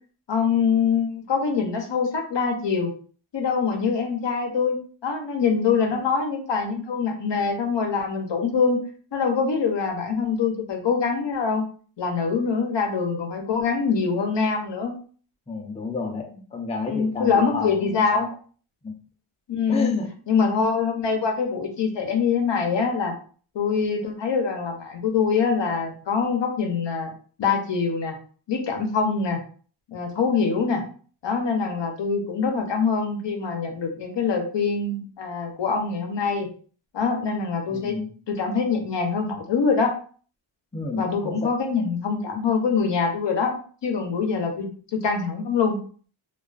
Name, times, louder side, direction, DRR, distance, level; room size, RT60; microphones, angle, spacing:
voice 1, 0.3-2.9 3.3-4.8 5.0-8.8 9.1-11.6 12.0-14.9 16.9-18.3 19.5-19.9 20.3-23.1 23.5-27.1 27.4-28.1 28.5-29.4 29.9-30.8 31.2-36.5 36.9-38.0 38.3-39.9 40.9-45.8, left 5 dB, 60° left, 3 dB, 0.6 m, -24 dB
voice 2, 15.5-18.3 18.8-19.0 19.7-20.1 37.7-38.1 40.7-41.4, left 3 dB, 15° left, 0 dB, 0.5 m, -30 dB
2.3 x 2.3 x 2.3 m, 0.42 s
wide cardioid pair, 75°, 48 cm